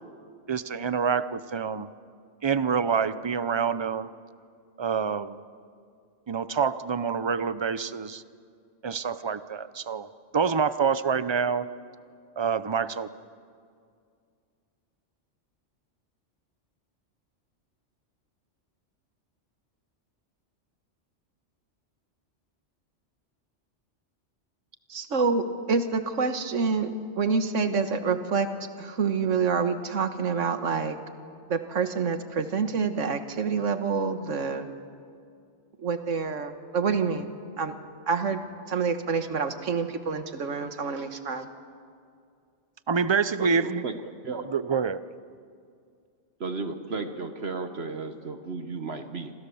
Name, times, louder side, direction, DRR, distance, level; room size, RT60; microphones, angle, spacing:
voice 1, 0.5-1.9 2.4-4.1 4.8-5.4 6.3-8.2 8.8-10.1 10.3-11.7 12.4-13.1 42.9-43.8 44.5-45.0, right 6 dB, 30° right, 14 dB, 0.6 m, -26 dB
voice 2, 24.9-28.5 28.8-31.0 31.5-34.7 35.8-37.3 37.6-37.7 38.1-38.4 38.7-41.5, right 5 dB, 85° right, 8 dB, 1.7 m, -27 dB
voice 3, 43.4-44.5 46.4-49.3, right 3 dB, 60° right, 8 dB, 1.4 m, -34 dB
27.0 x 27.0 x 7.1 m, 2.3 s
omnidirectional pair, 1.2 m